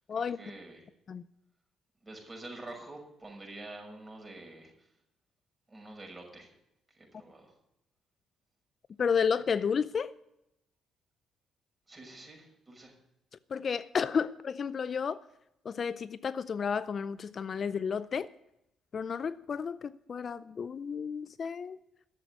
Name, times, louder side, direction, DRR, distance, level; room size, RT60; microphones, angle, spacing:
voice 1, 0.1-0.9 2.0-4.9 5.7-6.5 6.9-7.5 11.9-12.9, right 2 dB, 20° right, 6.2 m, -47 dB
voice 2, 9.0-10.1 13.5-15.2 15.6-18.3 18.9-21.8, left 6 dB, 50° left, 0.4 m, -32 dB
12.0 x 7.8 x 9.5 m
supercardioid pair, 65°, 0 cm